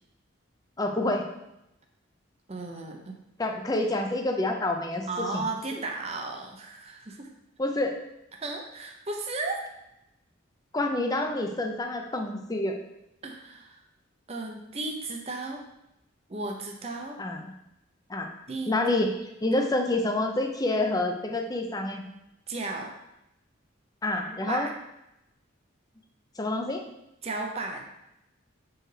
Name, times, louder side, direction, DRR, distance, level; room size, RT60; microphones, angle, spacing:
voice 1, 0.8-1.3 3.4-5.4 5.7-5.8 7.6-8.0 10.7-12.8 17.2-17.5 18.1-18.3 18.7-22.0 24.0-24.7 26.4-26.8, left 2 dB, 20° left, 4 dB, 0.5 m, -28 dB
voice 2, 2.5-3.2 5.1-7.3 8.3-9.6 13.2-13.8 14.3-15.6 16.3-17.2 18.5-18.7 22.5-22.9 24.5-24.7 27.2-27.8, right 3 dB, 30° right, 2 dB, 0.6 m, -34 dB
7.5 x 4.6 x 3.3 m, 0.87 s
head